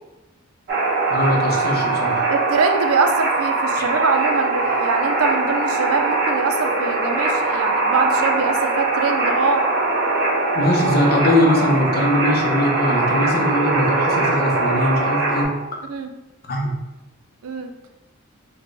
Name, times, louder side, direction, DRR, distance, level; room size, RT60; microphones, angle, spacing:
sound 1, 0.7-15.4, right 3 dB, 50° right, 0.9 m, -21 dB
voice 1, 1.1-2.3 3.8-3.9 10.5-15.5 16.5-16.7, left 1 dB, 45° left, 0 dB, 0.6 m, -21 dB
voice 2, 2.3-9.6 15.9-16.1 17.4-17.7, right 4 dB, 80° right, 5 dB, 0.4 m, -23 dB
4.1 x 2.2 x 3.2 m, 1.0 s
head